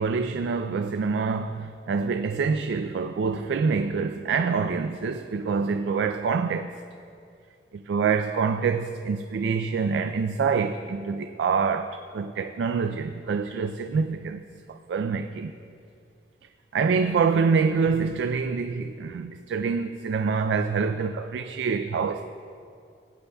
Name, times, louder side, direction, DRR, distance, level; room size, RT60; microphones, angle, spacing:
voice 1, 0.0-6.8 7.7-14.4 14.7-15.5 16.7-22.3, right 5 dB, 70° right, 0.3 m, -26 dB
16.5 x 8.2 x 2.2 m
head